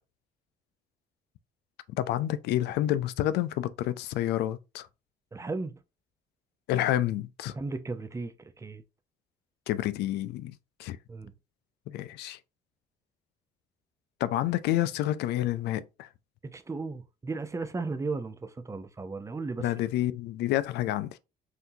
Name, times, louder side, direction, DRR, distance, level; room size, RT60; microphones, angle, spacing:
voice 1, 2.0-4.9 6.7-7.5 9.7-10.5 10.8-11.0 11.9-12.4 14.2-16.1 19.6-21.2, left 13 dB, 80° left, 0.4 m, -29 dB
voice 2, 5.3-5.8 7.5-8.8 11.1-11.3 16.5-19.7, right 3 dB, 15° right, 0.5 m, -35 dB
5.8 x 2.7 x 2.7 m
cardioid pair, 110°, 17 cm